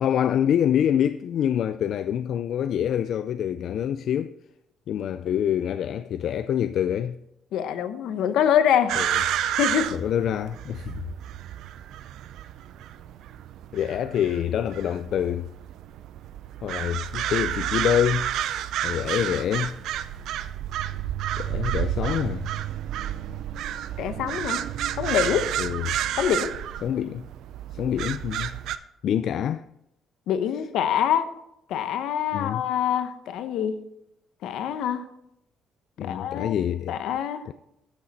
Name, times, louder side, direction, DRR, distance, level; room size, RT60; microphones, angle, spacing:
voice 1, 0.0-4.3 4.9-7.2 9.0-9.2 9.9-11.1 13.7-15.5 16.6-18.3 18.8-19.8 21.4-22.5 25.6-26.0 26.8-27.3 27.7-28.6 29.0-29.7 32.3-32.7 36.0-37.0 37.5-37.6, left 9 dB, 60° left, 0.3 m, -26 dB
voice 2, 7.5-9.0 9.6-9.9 24.0-24.6 25.0-25.5 26.2-26.5 30.3-31.3 31.7-33.7 34.4-35.0 36.0-36.5 36.9-37.5, left 9 dB, 80° left, 0.9 m, -25 dB
sound 1, 8.9-28.8, right 11 dB, 75° right, 0.5 m, -30 dB
13.5 x 6.6 x 4.2 m
cardioid pair, 140°, 0 cm